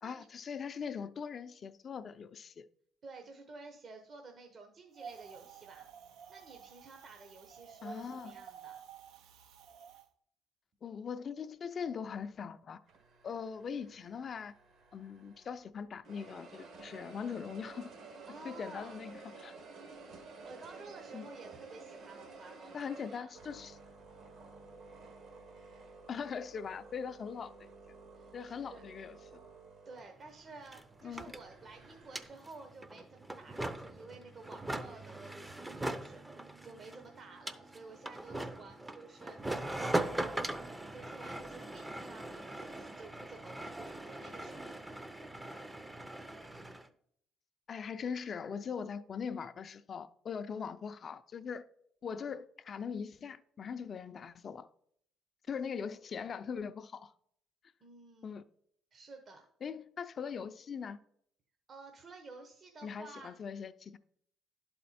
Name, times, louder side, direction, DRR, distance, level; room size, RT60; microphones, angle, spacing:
voice 1, 0.0-2.7 7.8-8.3 10.8-12.8 13.2-14.5 14.9-17.9 18.4-19.6 21.1-21.3 22.7-23.8 26.1-27.7 28.3-29.2 31.0-31.3 47.7-51.7 52.0-54.7 55.5-57.1 58.2-58.4 59.6-61.0 62.8-64.0, left 6 dB, 45° left, 0.4 m, -41 dB
voice 2, 3.0-5.9 6.3-8.8 18.3-19.0 19.8-20.1 20.4-23.3 28.1-28.8 29.8-40.2 40.9-45.0 55.5-55.6 57.8-58.4 58.9-59.5 61.7-63.4, right 3 dB, 45° right, 0.9 m, -52 dB
Wind, 4.9-10.0, right 7 dB, 80° right, 0.6 m, -51 dB
sound 1, 12.9-15.6 16.0-32.3, right 4 dB, 65° right, 1.5 m, -53 dB
sound 2, 30.0-30.1 30.3-46.9, right 1 dB, 15° right, 0.6 m, -41 dB
11.0 x 4.3 x 4.2 m
cardioid pair, 90°, 0 cm